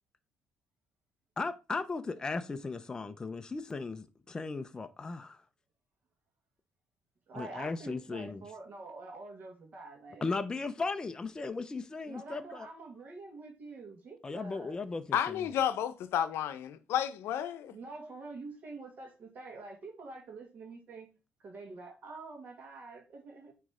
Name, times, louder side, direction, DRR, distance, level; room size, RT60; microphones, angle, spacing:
voice 1, 1.4-5.4 7.3-8.5 10.2-12.7 14.2-15.4, left 3 dB, 15° left, 0.5 m, -37 dB
voice 2, 7.3-10.2 12.1-14.8 17.7-21.1 21.4-23.5, right 3 dB, 40° right, 1.9 m, -46 dB
voice 3, 15.1-17.8, left 10 dB, 70° left, 0.8 m, -31 dB
8.9 x 3.1 x 5.0 m
cardioid pair, 150°, 4 cm